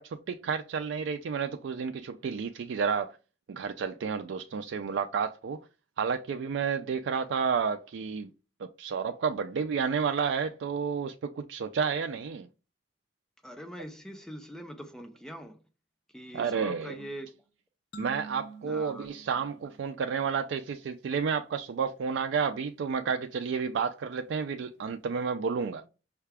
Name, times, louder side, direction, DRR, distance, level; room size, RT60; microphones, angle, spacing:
voice 1, 0.0-3.2 3.5-5.7 6.0-8.3 8.6-12.5 16.3-17.0 18.0-25.9, right 6 dB, 75° right, 0.3 m, -31 dB
voice 2, 13.4-15.6 16.1-17.3 18.6-19.1, equal, 5° left, 0.4 m, -43 dB
sound 1, 17.9-20.6, right 4 dB, 70° left, 0.7 m, -47 dB
5.6 x 2.3 x 3.3 m
head